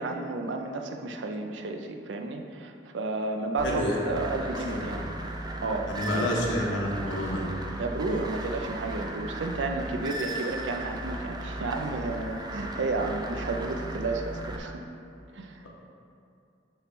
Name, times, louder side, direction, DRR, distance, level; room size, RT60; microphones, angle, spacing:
voice 1, 0.0-5.1 5.6-5.9 7.8-14.8 15.3-15.6, right 3 dB, 75° right, 4 dB, 0.5 m, -32 dB
voice 2, 3.6-4.0 4.7-4.8 5.9-7.4, equal, 90° left, -2 dB, 1.1 m, -28 dB
sound 1, 3.6-14.6, right 1 dB, 20° right, 0.5 m, -36 dB
6.5 x 3.1 x 5.9 m, 2.5 s
head